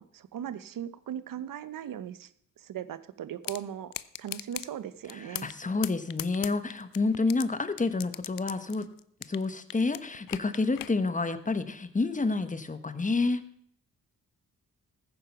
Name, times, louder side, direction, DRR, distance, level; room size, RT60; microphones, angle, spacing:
voice 1, 0.0-2.3 2.6-3.9 4.2-5.5, right 10 dB, 80° right, 15 dB, 0.9 m, -38 dB
sound 1, 3.4-3.6 3.9-4.7 5.1-5.6 5.8-7.4 7.8-9.5 9.7-10.9, left 13 dB, 85° left, 0.6 m, -37 dB
voice 2, 5.1-8.9 9.3-13.4, left 3 dB, 25° left, 11 dB, 1.3 m, -29 dB
14.5 x 9.8 x 5.9 m, 0.68 s
cardioid pair, 80°, 33 cm